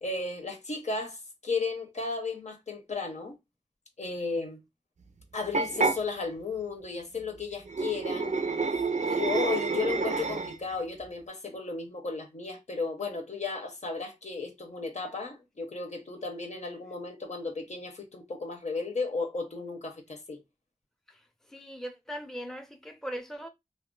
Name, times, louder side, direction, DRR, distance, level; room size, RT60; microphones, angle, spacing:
voice 1, 0.0-3.4 4.0-4.6 5.3-8.3 9.0-20.4, left 4 dB, 75° left, 0.8 m, -34 dB
sound 1, 5.5-6.0 7.7-10.7, right 4 dB, 80° right, 0.4 m, -28 dB
voice 2, 21.1-23.5, equal, 5° left, 0.6 m, -40 dB
2.4 x 2.1 x 3.7 m
wide cardioid pair, 60°, 12 cm